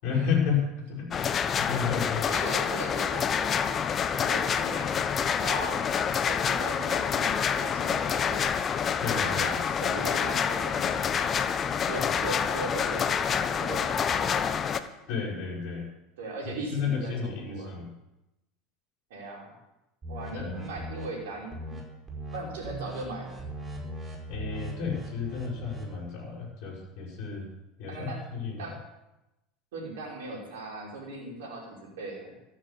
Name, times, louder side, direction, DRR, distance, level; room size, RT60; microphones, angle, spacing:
voice 1, 0.0-2.2 9.0-9.6 15.1-15.9 16.7-17.9 20.3-20.6 24.3-27.5 27.8-28.7, left 6 dB, 55° left, -1 dB, 6.4 m, -32 dB
sound 1, 1.1-14.8, left 7 dB, 35° left, 1.1 m, -27 dB
voice 2, 2.3-3.7 4.1-4.9 5.3-5.8 6.2-8.5 9.2-11.2 11.9-14.5 16.2-17.7 19.1-19.5 20.1-21.8 22.3-23.4 27.9-28.2 28.6-28.7 29.7-32.4, right 2 dB, 70° right, -1 dB, 5.6 m, -39 dB
sound 2, 20.0-21.1 21.5-21.8 22.1-22.4 22.6-25.9, right 1 dB, 25° right, 5.2 m, -39 dB
14.5 x 11.5 x 7.0 m, 0.93 s
figure-of-eight pair, 75°, 0 cm